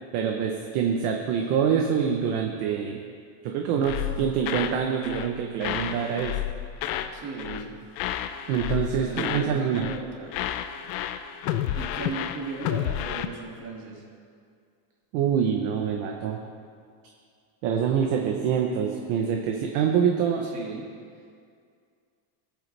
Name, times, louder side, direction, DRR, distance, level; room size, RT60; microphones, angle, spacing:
voice 1, 0.1-3.0 3.4-6.4 6.9-7.0 8.5-9.9 15.1-16.4 17.6-20.5, right 7 dB, 55° right, 2 dB, 0.9 m, -25 dB
sound 1, 3.8-4.8 5.0-5.3 5.6-7.1 7.4-7.7 7.9-9.5 9.7-10.0 10.3-13.3, left 11 dB, 85° left, 0.8 m, -31 dB
voice 2, 6.9-7.8 9.0-10.4 11.7-14.0 20.4-20.9, right 4 dB, 35° right, -2 dB, 2.1 m, -37 dB
19.0 x 8.3 x 3.3 m, 2.3 s
cardioid pair, 175°, 48 cm